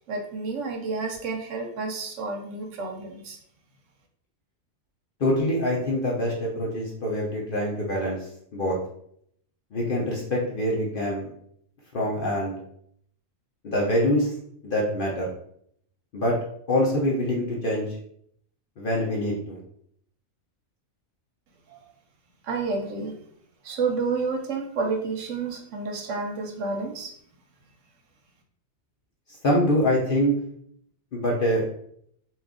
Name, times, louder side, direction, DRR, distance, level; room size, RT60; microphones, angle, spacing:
voice 1, 0.1-3.4 21.7-21.8 22.4-23.2 23.6-27.1, right 4 dB, 70° right, 2 dB, 0.9 m, -30 dB
voice 2, 5.2-8.8 9.7-11.3 11.9-12.5 13.6-14.3 14.6-15.3 16.1-16.3 16.7-18.0 18.8-19.6 29.4-30.3 31.1-31.6, equal, 50° left, -3 dB, 0.7 m, -25 dB
2.9 x 2.4 x 3.6 m, 0.67 s
omnidirectional pair, 1.5 m